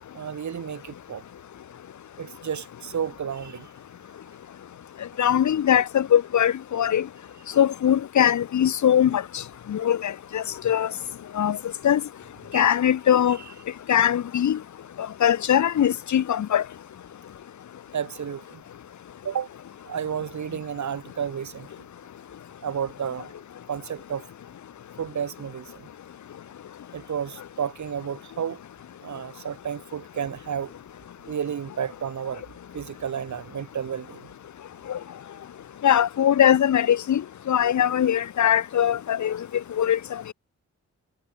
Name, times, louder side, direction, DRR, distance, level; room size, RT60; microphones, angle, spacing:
voice 1, 0.1-1.2 2.2-3.7 12.5-12.6 17.9-18.6 19.2-19.5 19.9-21.9 22.6-23.3 23.7-24.2 25.0-25.9 26.9-28.6 29.0-30.7 31.2-32.4 32.7-34.3, right 8 dB, 75° right, 1.9 m, -32 dB
voice 2, 5.2-7.1 7.6-9.2 9.7-10.9 11.3-11.6 11.8-12.0 12.5-13.4 13.9-14.6 15.2-16.6 34.9-35.0 35.8-39.4 39.8-40.0, left 10 dB, 75° left, 0.8 m, -21 dB
wide cardioid pair, 90°, 29 cm